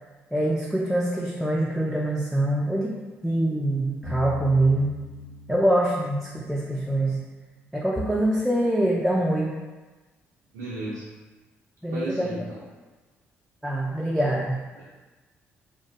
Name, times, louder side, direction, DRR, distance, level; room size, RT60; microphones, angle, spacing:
voice 1, 0.3-2.9 3.2-5.0 5.5-7.2 7.7-9.5 11.8-12.3 13.6-14.6, right 1 dB, 5° right, -4 dB, 0.4 m, -24 dB
sound 1, 4.0-7.1, left 6 dB, 60° left, 0.6 m, -39 dB
voice 2, 10.5-11.0 11.9-12.6 14.8-14.9, right 2 dB, 85° right, -8 dB, 0.4 m, -34 dB
2.4 x 2.1 x 2.8 m, 1.2 s
hypercardioid pair, 50°, 6 cm